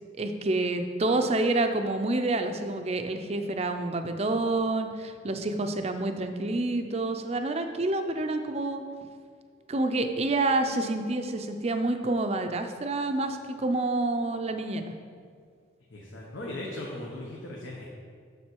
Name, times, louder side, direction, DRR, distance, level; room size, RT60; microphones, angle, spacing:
voice 1, 0.2-8.8 9.7-14.8, right 2 dB, 30° right, 7 dB, 0.5 m, -28 dB
voice 2, 15.9-17.8, left 1 dB, 80° left, -3 dB, 1.0 m, -38 dB
7.3 x 6.7 x 4.6 m, 2.1 s
head